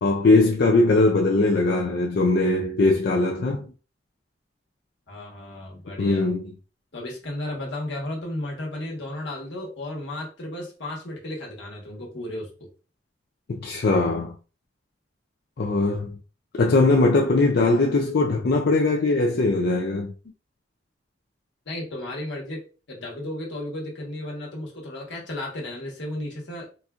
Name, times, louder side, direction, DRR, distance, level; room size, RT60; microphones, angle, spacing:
voice 1, 0.0-3.7 6.0-6.4 13.5-14.4 15.6-16.2 16.5-20.1, left 2 dB, 60° left, 0.4 m, -20 dB
voice 2, 5.1-6.3 6.9-12.5 21.6-22.6 22.9-26.7, left 1 dB, 85° left, 1.3 m, -34 dB
4.0 x 2.4 x 2.4 m
head